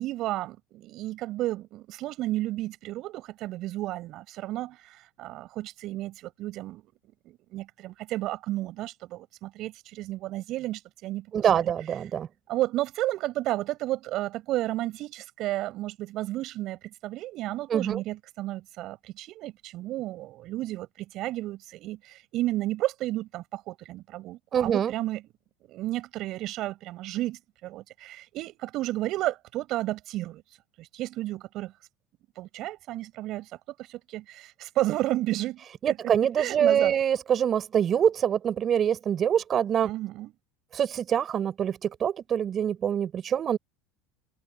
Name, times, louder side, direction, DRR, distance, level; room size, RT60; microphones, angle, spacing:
voice 1, 0.0-6.8 7.2-11.7 12.5-25.2 25.7-30.4 30.8-31.7 32.4-33.5 33.8-37.0 39.8-40.3, right 16 dB, 55° right, 7.6 m, -32 dB
voice 2, 11.3-12.3 17.7-18.0 24.5-24.9 35.8-39.9 40.7-43.6, right 9 dB, 40° right, 4.9 m, -25 dB
supercardioid pair, 95°, 0 cm